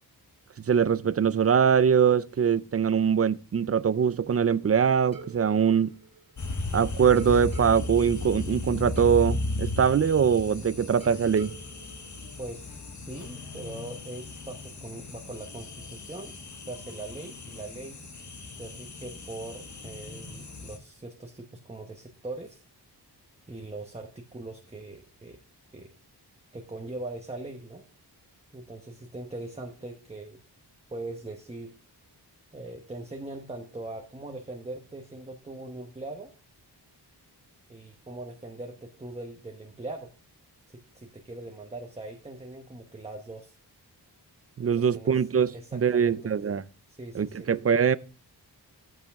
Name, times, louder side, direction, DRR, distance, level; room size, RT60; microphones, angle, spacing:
voice 1, 0.7-5.9 6.7-11.5 44.6-46.6 47.2-48.0, right 7 dB, 35° right, 0.4 m, -23 dB
sound 1, 5.1-6.7 7.2-10.6 11.0-13.0, right 3 dB, 55° right, 2.2 m, -49 dB
sound 2, 6.4-20.8, left 2 dB, 45° left, 1.3 m, -36 dB
voice 2, 12.4-16.3 16.7-18.0 18.6-22.6 23.5-25.4 25.7-25.9 26.5-27.8 28.5-30.4 30.9-31.7 32.5-36.3 37.7-40.1 40.7-43.5 44.6-45.2 45.5-46.3 46.9-47.5, right 2 dB, 15° right, 1.0 m, -41 dB
14.0 x 5.5 x 3.5 m
wide cardioid pair, 110°, 41 cm